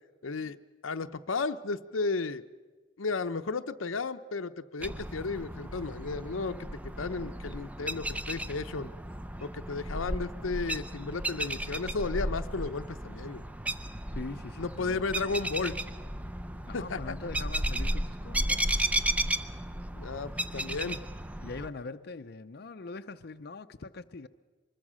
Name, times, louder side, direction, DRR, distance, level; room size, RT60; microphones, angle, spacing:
voice 1, 0.2-0.6 0.8-2.4 3.0-8.9 9.4-13.4 14.6-15.8 16.7-17.1 19.9-21.0, left 4 dB, 90° left, 0.8 m, -34 dB
sound 1, 4.8-21.7, right 1 dB, 5° right, 0.6 m, -34 dB
voice 2, 14.1-15.0 16.7-18.7 21.4-24.3, left 3 dB, 55° left, 0.6 m, -42 dB
24.5 x 21.0 x 6.3 m
head